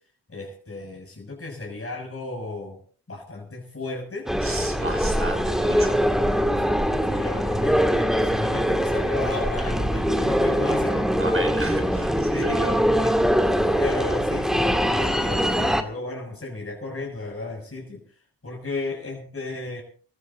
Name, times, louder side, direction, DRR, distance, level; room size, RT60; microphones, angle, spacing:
voice 1, 0.3-2.8 3.1-4.3 4.8-4.9 5.2-5.3 6.2-11.1 12.3-18.0 18.4-19.8, left 2 dB, 30° left, -2 dB, 7.1 m, -34 dB
sound 1, 4.3-15.8, equal, ahead, 2.0 m, -22 dB
voice 2, 4.4-6.1 11.2-12.8, right 2 dB, 30° right, 5 dB, 5.8 m, -32 dB
29.0 x 14.5 x 2.6 m, 0.43 s
supercardioid pair, 45°, 45 cm